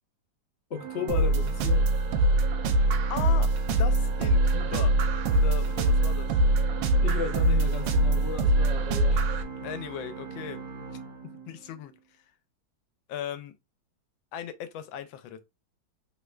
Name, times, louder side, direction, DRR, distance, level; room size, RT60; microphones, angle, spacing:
voice 1, 0.7-1.9 7.0-9.3 9.6-9.7, left 6 dB, 60° left, 0.7 m, -35 dB
Organ, 0.7-11.9, right 5 dB, 60° right, 1.2 m, -40 dB
sound 1, 1.1-9.4, right 1 dB, 75° right, 1.2 m, -23 dB
voice 2, 2.8-5.0 5.3-6.4 9.6-10.9 11.5-12.3 13.1-13.5 14.3-15.4, left 9 dB, 85° left, 1.3 m, -38 dB
3.5 x 3.1 x 2.3 m
omnidirectional pair, 2.1 m